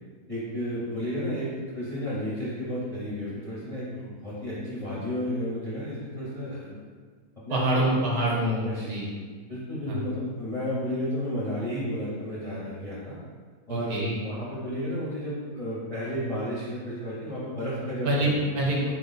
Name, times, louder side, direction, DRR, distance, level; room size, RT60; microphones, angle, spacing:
voice 1, 0.3-1.5 1.7-6.8 7.5-8.0 8.6-8.9 9.5-13.2 13.7-18.4, equal, 35° left, -8 dB, 0.6 m, -32 dB
voice 2, 7.5-9.1 9.9-10.0 13.7-14.2 18.0-19.0, right 1 dB, 65° right, -3 dB, 1.2 m, -26 dB
4.3 x 3.0 x 3.9 m, 1.5 s
omnidirectional pair, 1.9 m